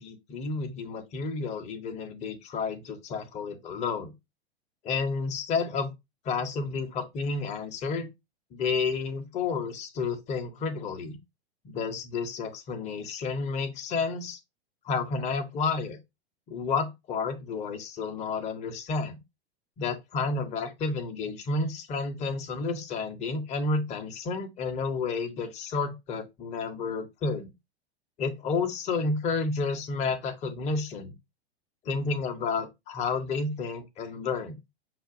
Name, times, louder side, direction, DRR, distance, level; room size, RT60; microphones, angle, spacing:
voice 1, 0.0-4.1 4.8-5.9 6.2-8.1 8.5-11.2 11.6-14.4 14.8-16.0 16.5-19.2 19.8-27.5 28.2-31.1 31.8-34.6, left 4 dB, 20° left, 0.7 m, -31 dB
5.7 x 2.5 x 2.5 m
figure-of-eight pair, 100°, 31 cm